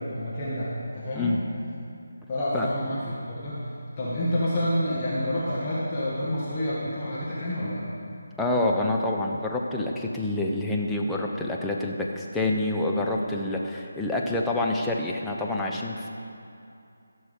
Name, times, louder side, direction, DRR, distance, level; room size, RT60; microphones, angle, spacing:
voice 1, 0.0-1.4 2.3-3.6 4.0-7.9, equal, 25° left, -8 dB, 1.8 m, -28 dB
voice 2, 8.4-16.1, left 2 dB, 5° left, -2 dB, 0.8 m, -27 dB
15.5 x 6.3 x 5.4 m, 2.6 s
figure-of-eight pair, 160°, 0 cm